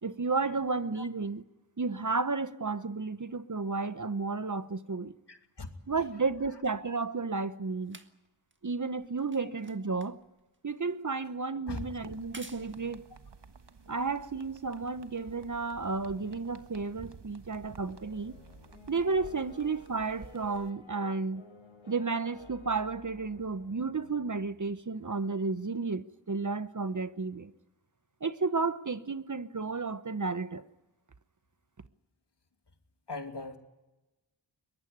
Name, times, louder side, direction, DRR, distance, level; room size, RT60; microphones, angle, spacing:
voice 1, 0.0-1.4 1.8-5.2 5.9-8.0 8.6-10.2 10.6-13.1 13.9-18.4 18.9-21.4 21.9-27.5 28.2-30.6, right 4 dB, 40° right, 1.0 m, -32 dB
voice 2, 5.3-5.7 6.0-6.1 11.7-11.8 33.1-33.6, left 3 dB, 60° left, 2.7 m, -40 dB
sound 1, 7.0-14.6 15.5-15.6, right 2 dB, 25° right, 1.6 m, -56 dB
sound 2, 11.7-20.7, right 5 dB, 60° right, 1.4 m, -53 dB
sound 3, 17.8-24.7, left 3 dB, 90° left, 4.8 m, -54 dB
22.5 x 19.5 x 9.4 m
wide cardioid pair, 55°, 47 cm